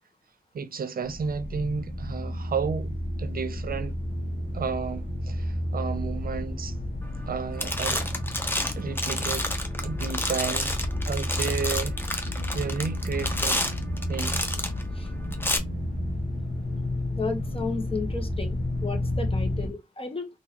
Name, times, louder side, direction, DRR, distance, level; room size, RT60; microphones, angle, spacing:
voice 1, 0.5-4.0 4.5-6.7 7.3-8.1 8.8-9.5 9.8-10.8 11.1-11.9 12.5-13.7 14.1-14.4, right 5 dB, 80° right, 0.5 m, -32 dB
sound 1, 1.0-19.7, left 1 dB, 85° left, 1.1 m, -31 dB
sound 2, 7.1-7.3 7.6-14.8 15.3-15.6, left 1 dB, 15° left, 0.9 m, -30 dB
voice 2, 17.2-18.6 18.8-20.3, left 3 dB, 40° left, 1.1 m, -33 dB
3.7 x 2.6 x 2.9 m
cardioid pair, 50°, 15 cm